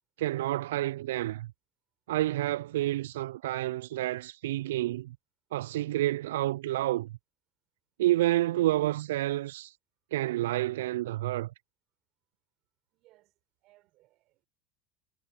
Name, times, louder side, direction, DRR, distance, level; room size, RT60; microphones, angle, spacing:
voice 1, 0.2-1.5 2.1-5.2 5.5-7.2 8.0-9.7 10.1-11.5, right 15 dB, 75° right, 0.4 m, -29 dB
voice 2, 12.9-14.5, right 18 dB, 55° right, 5.5 m, -65 dB
hypercardioid pair, 75°, 0 cm